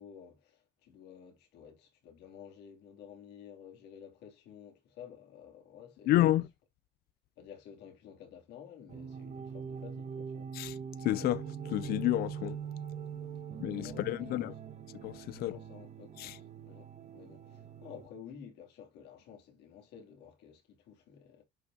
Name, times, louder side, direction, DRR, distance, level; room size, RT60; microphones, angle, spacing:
voice 1, 0.0-6.4 7.4-10.5 13.8-14.6 15.3-21.4, left 8 dB, 85° left, 2.7 m, -52 dB
voice 2, 6.1-6.5 10.5-12.6 13.6-14.5 15.0-15.5 16.2-16.4, left 15 dB, 65° left, 0.4 m, -30 dB
sound 1, 8.9-18.1, right 7 dB, 40° right, 1.3 m, -43 dB
11.0 x 5.4 x 2.7 m
cardioid pair, 110°, 17 cm